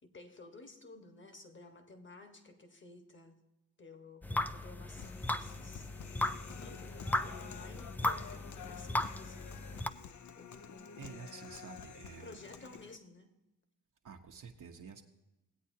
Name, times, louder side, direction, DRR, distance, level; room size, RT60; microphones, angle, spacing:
voice 1, 0.0-3.4 3.8-5.9 6.6-9.7 10.4-11.2 12.2-13.3, left 3 dB, 30° left, 6 dB, 1.5 m, -54 dB
sound 1, 4.2-9.9, left 1 dB, 5° left, 0.4 m, -37 dB
Human voice, 5.0-13.0, left 7 dB, 50° left, 0.7 m, -50 dB
voice 2, 10.9-12.4 14.0-15.0, right 6 dB, 55° right, 2 dB, 1.0 m, -49 dB
17.5 x 8.3 x 2.8 m, 0.98 s
supercardioid pair, 50°, 39 cm